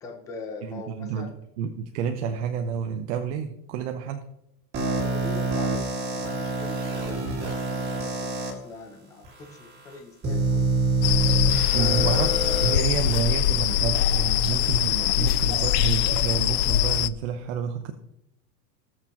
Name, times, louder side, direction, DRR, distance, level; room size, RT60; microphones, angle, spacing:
voice 1, 0.0-1.3 4.8-10.6 11.8-12.3 15.0-15.7, left 3 dB, 5° left, 3 dB, 0.4 m, -41 dB
voice 2, 0.6-1.3 1.6-4.2 11.7-17.9, right 7 dB, 50° right, 5 dB, 0.8 m, -29 dB
sound 1, 4.7-8.5 9.2-9.3 10.2-12.7, right 3 dB, 20° right, 2.0 m, -26 dB
sound 2, 11.0-17.1, left 12 dB, 90° left, 0.6 m, -23 dB
20.0 x 6.7 x 3.0 m, 0.83 s
supercardioid pair, 170°, 47 cm